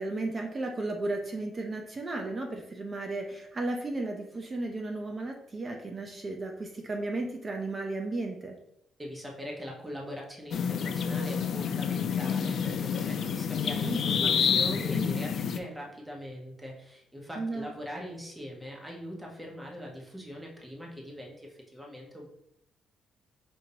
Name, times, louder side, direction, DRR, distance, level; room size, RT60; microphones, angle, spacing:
voice 1, 0.0-8.6 13.8-14.3 17.4-17.7, right 2 dB, 35° right, 2 dB, 0.6 m, -34 dB
voice 2, 9.0-22.3, equal, 10° right, -2 dB, 1.2 m, -41 dB
sound 1, 10.5-15.6, left 7 dB, 65° left, 0.4 m, -28 dB
5.3 x 2.8 x 2.8 m, 0.76 s
cardioid pair, 90°, 0 cm